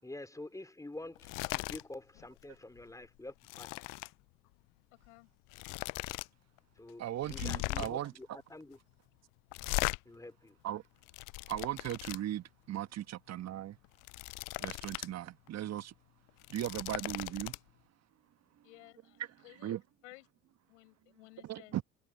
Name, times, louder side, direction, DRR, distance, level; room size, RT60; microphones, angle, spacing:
voice 1, 0.0-3.7 6.8-8.8 10.0-10.6, left 2 dB, 10° left, 4.3 m, -47 dB
sound 1, 1.2-1.8 2.2-2.4 2.8-4.1 5.1-5.2 5.5-6.3 6.6-6.7 7.2-8.1 9.5-10.0 10.8-12.2 13.8-15.1 15.5-15.6 16.3-17.6, left 26 dB, 55° left, 0.7 m, -38 dB
voice 2, 7.0-8.4 10.6-10.8 11.5-13.8 14.6-15.9 16.5-17.5 19.2-19.3 19.6-19.8 21.4-21.8, right 12 dB, 45° right, 1.4 m, -38 dB
voice 3, 18.6-19.8 20.0-20.3 20.7-21.8, left 22 dB, 75° left, 6.4 m, -56 dB
hypercardioid pair, 65°, 37 cm